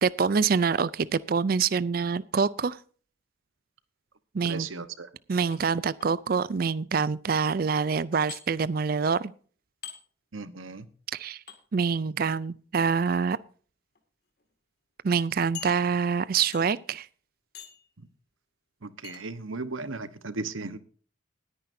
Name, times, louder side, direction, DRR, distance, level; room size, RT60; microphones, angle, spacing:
voice 1, 0.0-2.8 4.3-4.7 5.3-9.3 11.1-11.4 11.7-13.4 15.0-17.1, right 5 dB, 45° right, 0.4 m, -26 dB
voice 2, 4.4-5.1 10.3-10.9 18.8-20.8, right 3 dB, 90° right, 1.1 m, -36 dB
sound 1, 5.5-6.1 8.3-8.4 9.8-10.0 11.5-11.6 12.9-13.2 13.9-14.0 14.4-14.5 15.5-16.2 16.5-16.9 17.5-17.9 19.0-19.2, left 10 dB, 55° left, 2.2 m, -43 dB
20.0 x 9.8 x 2.7 m
head